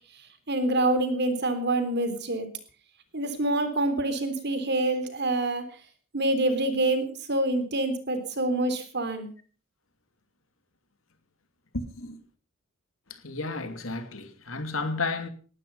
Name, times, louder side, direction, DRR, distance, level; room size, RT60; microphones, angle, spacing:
voice 1, 0.5-2.5 3.1-5.7 6.1-7.0 7.3-9.3, right 2 dB, 55° right, 3.5 m, -26 dB
voice 2, 11.7-12.2 13.1-15.3, left 3 dB, 85° left, 2.8 m, -32 dB
19.5 x 12.5 x 5.6 m
head